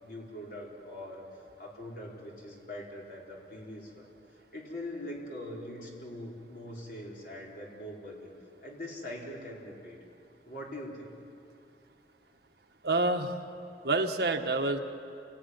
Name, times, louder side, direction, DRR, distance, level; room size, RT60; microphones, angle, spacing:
voice 1, 0.0-1.3 1.6-4.1 4.5-8.3 8.6-10.0 10.5-11.1, left 1 dB, 50° left, -3 dB, 4.9 m, -42 dB
voice 2, 12.8-13.3 13.8-14.8, right 2 dB, 70° right, 4 dB, 1.5 m, -27 dB
29.5 x 18.5 x 9.7 m, 2.7 s
head